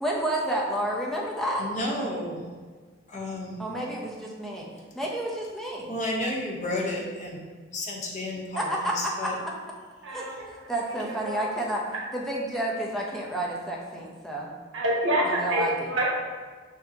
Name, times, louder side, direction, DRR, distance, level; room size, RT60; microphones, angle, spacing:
voice 1, 0.0-1.6 3.6-4.7 4.9-5.9 8.6-8.9 9.2-9.3 10.1-11.9 12.1-14.5 15.2-15.9, right 1 dB, ahead, -3 dB, 0.5 m, -30 dB
voice 2, 1.6-2.5 3.1-3.6 5.9-7.4 7.7-9.4 10.9-11.0, left 1 dB, 40° left, -2 dB, 0.7 m, -32 dB
voice 3, 14.7-16.0, right 1 dB, 85° right, -3 dB, 1.1 m, -26 dB
6.2 x 2.7 x 2.7 m, 1.5 s
head